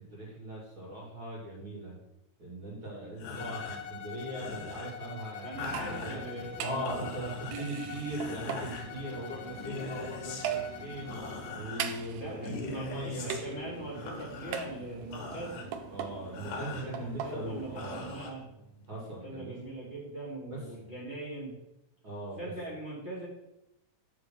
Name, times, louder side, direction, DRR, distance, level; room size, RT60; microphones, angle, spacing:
voice 1, 0.1-2.0 2.4-6.2 6.6-11.2 11.6-13.3 15.9-18.1 18.9-19.5 20.5-20.6 22.0-22.5, right 1 dB, 40° right, -5 dB, 2.8 m, -39 dB
sound 1, 3.1-19.0, left 4 dB, 70° left, 2.6 m, -44 dB
Bowed string instrument, 3.4-11.7, left 8 dB, 90° left, 1.5 m, -45 dB
voice 2, 5.4-6.8 7.6-7.7 8.9-9.1 12.1-15.7 16.8-18.4 19.0-21.5 22.4-23.3, right 1 dB, 20° right, -6 dB, 1.8 m, -41 dB
sound 2, 5.5-18.2, right 8 dB, 80° right, 1.6 m, -41 dB
7.9 x 5.1 x 6.1 m, 0.89 s
omnidirectional pair, 3.8 m